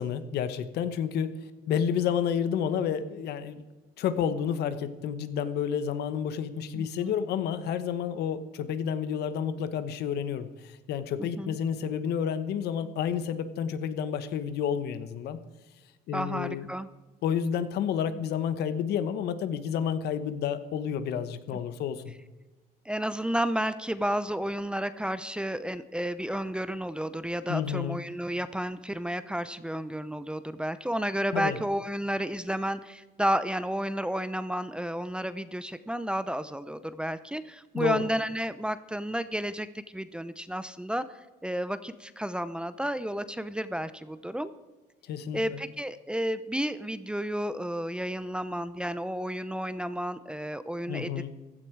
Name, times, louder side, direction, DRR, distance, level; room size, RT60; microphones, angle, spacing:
voice 1, 0.0-1.3 1.7-3.6 4.0-15.4 16.1-16.7 17.2-22.1 27.5-28.0 31.3-31.6 37.7-38.1 45.1-45.6 50.9-51.3, left 8 dB, 75° left, 12 dB, 1.2 m, -30 dB
voice 2, 6.8-7.2 11.2-11.6 16.1-16.9 22.8-44.5 45.3-51.3, equal, 5° right, 13 dB, 0.6 m, -32 dB
15.5 x 11.5 x 4.7 m, 1.2 s
cardioid pair, 110°, 17 cm